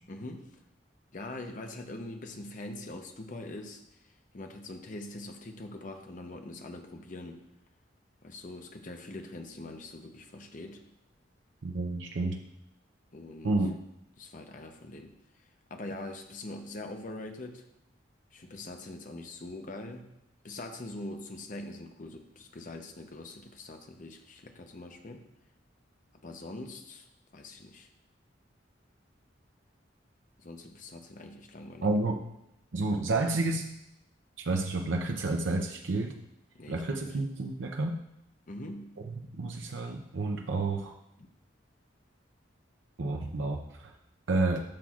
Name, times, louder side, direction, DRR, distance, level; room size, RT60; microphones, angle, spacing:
voice 1, 0.1-0.6 1.1-3.8 4.3-7.4 8.2-10.8 13.1-13.5 14.2-15.1 15.7-17.7 18.3-20.2 20.4-25.2 26.2-27.1 27.3-27.9 30.4-31.9 36.5-37.2 38.5-38.9 41.2-41.3, left 2 dB, 45° left, 5 dB, 0.8 m, -43 dB
voice 2, 11.6-12.4 13.4-13.7 31.8-32.2 32.7-33.7 34.4-36.1 36.7-38.0 39.4-40.9 43.0-43.9 44.3-44.6, right 2 dB, 85° right, 2 dB, 0.6 m, -30 dB
12.0 x 6.1 x 2.4 m, 0.82 s
head